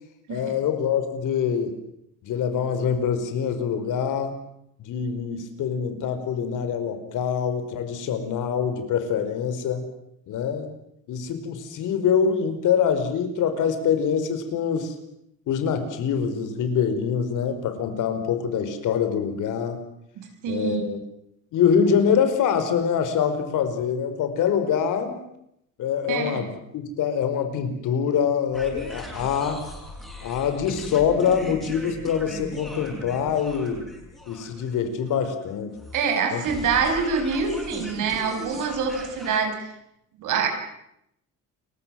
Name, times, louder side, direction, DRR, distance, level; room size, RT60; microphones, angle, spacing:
voice 1, 0.3-1.8 2.2-4.4 4.8-9.9 10.3-10.7 11.1-14.9 15.5-19.8 20.5-21.0 21.5-25.2 25.8-29.7 30.2-33.8 34.3-35.7 36.3-36.4, left 7 dB, 70° left, 9 dB, 5.0 m, -24 dB
voice 2, 20.2-20.9 26.1-26.5 35.9-39.7 40.2-40.5, right 5 dB, 70° right, 5 dB, 5.6 m, -25 dB
sound 1, 28.5-39.4, equal, ahead, 7.6 m, -39 dB
30.0 x 23.0 x 7.7 m, 0.77 s
cardioid pair, 170°, 32 cm